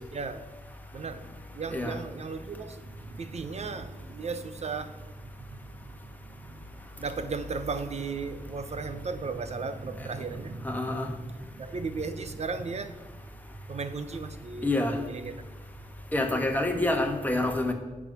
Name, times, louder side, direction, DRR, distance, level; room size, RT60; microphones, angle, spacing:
voice 1, 0.1-0.5 0.9-12.9 13.7-14.7 15.1-15.3, right 4 dB, 50° right, 10 dB, 0.8 m, -36 dB
voice 2, 10.6-11.1 14.6-15.0 16.1-17.7, left 2 dB, 10° left, 4 dB, 1.4 m, -27 dB
10.0 x 6.1 x 6.1 m, 1.2 s
wide cardioid pair, 105°, 14 cm